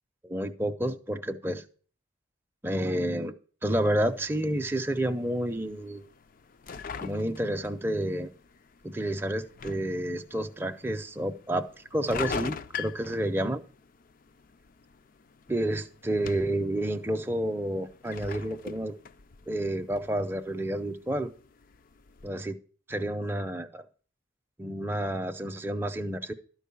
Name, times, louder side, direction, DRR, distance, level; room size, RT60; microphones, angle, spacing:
voice 1, 0.2-1.6 2.6-3.4 3.6-6.0 7.0-8.3 8.8-13.6 15.5-19.0 19.5-21.3 22.2-22.6 22.9-23.8 24.6-26.3, right 1 dB, 10° right, 5 dB, 0.5 m, -30 dB
sound 1, 3.7-22.3, left 6 dB, 45° left, 0.4 m, -44 dB
12.5 x 4.6 x 6.8 m, 0.43 s
head